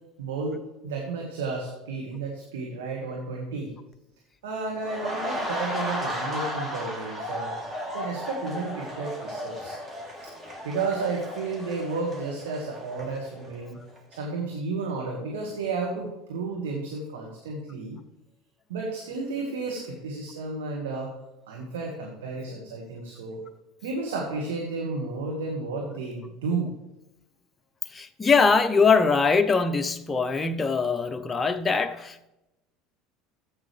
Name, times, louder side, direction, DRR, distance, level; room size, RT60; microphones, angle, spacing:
voice 1, 0.2-3.7 4.4-7.6 7.9-9.8 10.2-10.3 10.6-13.8 14.2-18.0 18.7-21.2 21.5-23.4 23.8-26.7, right 3 dB, 80° right, 1.7 m, -32 dB
sound 1, 4.8-13.6 14.0-14.2, left 1 dB, 15° right, 3.1 m, -34 dB
voice 2, 27.9-32.3, left 4 dB, 25° left, 0.8 m, -22 dB
14.0 x 8.5 x 3.4 m
hypercardioid pair, 75°, 0 cm